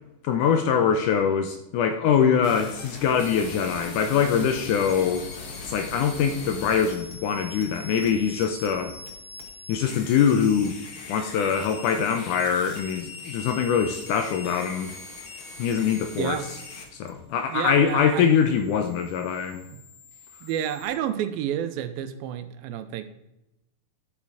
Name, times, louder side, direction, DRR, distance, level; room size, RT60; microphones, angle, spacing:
voice 1, 0.2-5.3 5.7-8.9 9.7-10.8 11.1-14.9 15.6-16.4 16.9-19.7, left 7 dB, 75° left, 7 dB, 1.9 m, -23 dB
sound 1, 2.4-20.9, left 3 dB, 55° left, 1.6 m, -41 dB
voice 2, 16.2-16.5 17.5-18.3 19.7-19.8 20.4-23.1, right 10 dB, 90° right, 10 dB, 2.5 m, -30 dB
10.5 x 7.3 x 4.8 m, 0.91 s
omnidirectional pair, 4.2 m